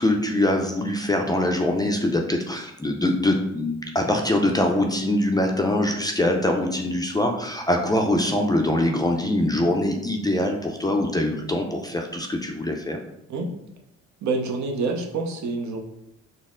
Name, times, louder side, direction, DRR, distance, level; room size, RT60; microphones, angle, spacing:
voice 1, 0.0-13.0, left 1 dB, 15° left, 2 dB, 0.4 m, -23 dB
voice 2, 14.2-15.8, right 3 dB, 65° right, 2 dB, 0.7 m, -27 dB
4.1 x 2.0 x 3.6 m, 0.80 s
cardioid pair, 90°, 30 cm